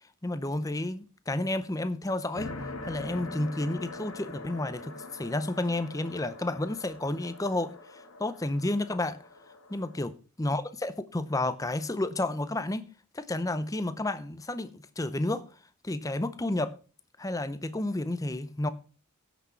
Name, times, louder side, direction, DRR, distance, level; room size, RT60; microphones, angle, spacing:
voice 1, 0.2-2.5 2.8-9.2 9.7-12.9 13.1-15.4 15.8-16.7 17.2-18.7, left 2 dB, 15° left, 0.6 m, -31 dB
sound 1, 2.4-10.0, left 2 dB, 80° left, 1.6 m, -43 dB
16.0 x 6.2 x 4.5 m
head